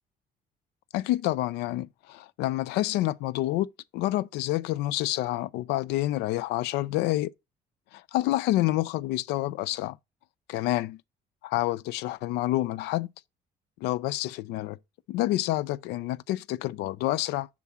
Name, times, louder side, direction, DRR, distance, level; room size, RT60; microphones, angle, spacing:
voice 1, 0.9-3.7 3.9-7.3 7.9-10.0 10.5-11.0 11.4-13.1 13.8-14.8 15.1-17.5, left 16 dB, 85° left, 0.4 m, -28 dB
5.9 x 3.6 x 5.5 m
cardioid pair, 110°, 17 cm